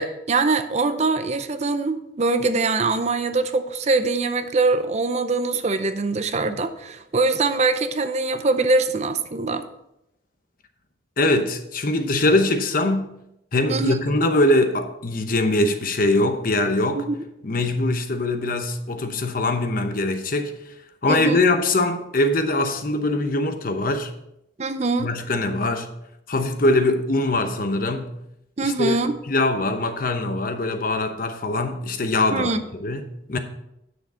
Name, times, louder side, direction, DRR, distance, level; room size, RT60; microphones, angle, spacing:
voice 1, 0.0-9.6 13.7-14.0 17.0-17.1 21.1-21.4 24.6-25.1 28.6-29.2 32.3-32.6, right 3 dB, 40° right, 0.6 m, -23 dB
voice 2, 11.2-13.1 13.5-17.1 17.4-20.6 21.0-24.1 25.0-25.9 26.3-28.1 28.6-29.0 29.3-33.4, left 2 dB, 50° left, 0.9 m, -22 dB
9.7 x 6.5 x 4.3 m
head